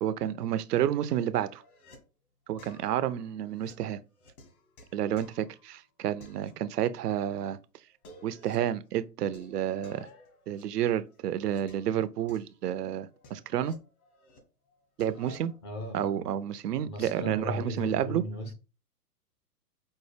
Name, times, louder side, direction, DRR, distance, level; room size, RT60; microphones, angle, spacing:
voice 1, 0.0-1.6 2.5-4.0 4.9-7.6 8.2-10.1 10.5-13.7 15.0-15.5 15.9-18.2, right 10 dB, 75° right, 0.5 m, -30 dB
sound 1, 1.1-2.0 2.6-5.8 6.2-7.1 7.4-7.5 7.9-8.8 9.3-12.0 12.3-14.4 14.7-15.6, left 2 dB, 60° left, 1.7 m, -55 dB
voice 2, 15.6-16.2 16.8-18.5, equal, 20° left, 0.4 m, -36 dB
5.3 x 2.1 x 3.3 m
hypercardioid pair, 125°, 49 cm